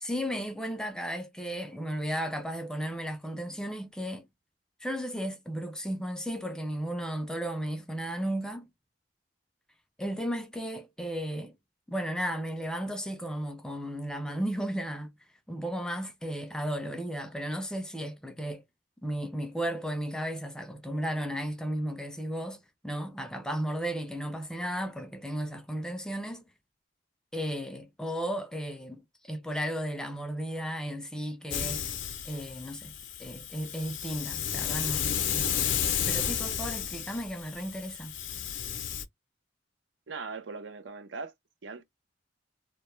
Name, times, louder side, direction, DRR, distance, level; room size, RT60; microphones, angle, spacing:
voice 1, 0.0-4.3 4.8-8.7 10.0-11.6 11.9-15.1 15.5-18.6 19.0-26.5 27.3-31.8 32.2-32.9 33.2-35.8 36.0-38.1, equal, 5° left, 0.4 m, -34 dB
Hiss, 31.5-39.0, left 8 dB, 85° left, 0.5 m, -32 dB
voice 2, 40.1-41.3 41.6-41.8, right 4 dB, 75° right, 0.5 m, -39 dB
2.2 x 2.1 x 3.0 m
head